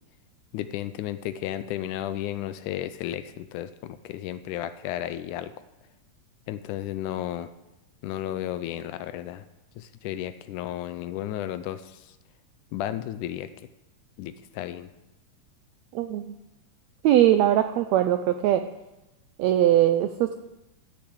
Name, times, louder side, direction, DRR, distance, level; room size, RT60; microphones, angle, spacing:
voice 1, 0.5-5.5 6.5-7.5 8.0-9.4 9.8-12.1 12.7-13.5 14.2-14.9, left 12 dB, 80° left, 13 dB, 1.9 m, -33 dB
voice 2, 15.9-16.3 17.0-18.6 19.4-20.4, right 12 dB, 90° right, 9 dB, 1.5 m, -21 dB
13.5 x 6.9 x 7.9 m, 0.99 s
omnidirectional pair, 3.8 m